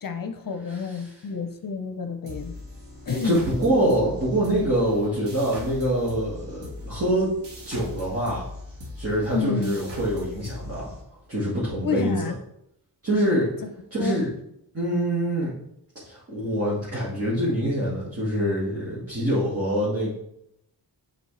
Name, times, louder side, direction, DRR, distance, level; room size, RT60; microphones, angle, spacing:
voice 1, 0.0-2.5 3.1-3.4 9.3-9.8 11.8-12.3 14.0-14.2, left 5 dB, 55° left, 0.7 m, -29 dB
voice 2, 0.7-1.1 3.2-7.3 7.7-8.4 9.0-10.9 11.3-12.1 13.0-13.5 13.9-14.3 14.7-15.5 16.0-20.1, right 1 dB, 35° right, 1.9 m, -25 dB
sound 1, 2.3-11.5, left 2 dB, 85° right, 1.8 m, -40 dB
8.1 x 4.3 x 3.3 m
wide cardioid pair, 125°, 41 cm